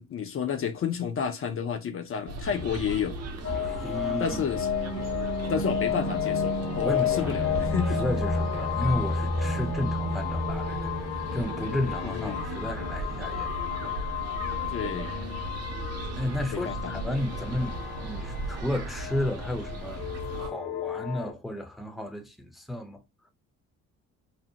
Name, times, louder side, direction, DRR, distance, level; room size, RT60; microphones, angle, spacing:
voice 1, 0.0-3.2 4.2-4.7 5.5-8.0 12.0-12.4 14.7-15.1 16.5-16.9, left 7 dB, 45° left, 0.5 m, -31 dB
sound 1, 2.3-20.5, right 2 dB, 55° right, 0.6 m, -37 dB
sound 2, 3.4-21.3, left 5 dB, 70° left, 1.2 m, -31 dB
voice 2, 3.5-4.4 4.9-5.0 6.8-10.9 11.3-13.5 16.2-20.0 20.4-23.0, left 1 dB, ahead, 0.6 m, -33 dB
2.7 x 2.0 x 2.7 m
cardioid pair, 90°, 30 cm